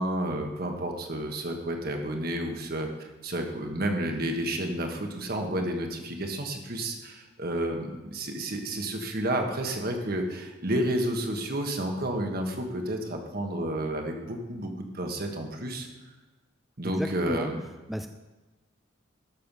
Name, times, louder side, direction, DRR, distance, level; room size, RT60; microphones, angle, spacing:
voice 1, 0.0-15.9 16.8-17.6, right 1 dB, 50° right, 3 dB, 1.4 m, -31 dB
voice 2, 16.8-17.5 17.9-18.1, equal, ahead, 6 dB, 0.3 m, -33 dB
13.0 x 6.7 x 5.4 m, 1.2 s
head